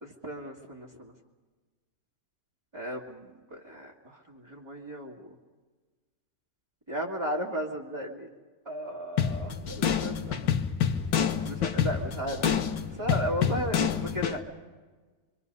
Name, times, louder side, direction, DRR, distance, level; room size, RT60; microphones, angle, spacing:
voice 1, 0.0-1.1 2.7-5.4 6.9-8.3 8.7-10.4 11.4-12.5 12.9-14.4, equal, 15° right, -4 dB, 1.9 m, -35 dB
sound 1, 9.2-14.4, left 8 dB, 85° left, 1.8 m, -28 dB
26.0 x 25.0 x 5.5 m, 1.3 s
omnidirectional pair, 1.9 m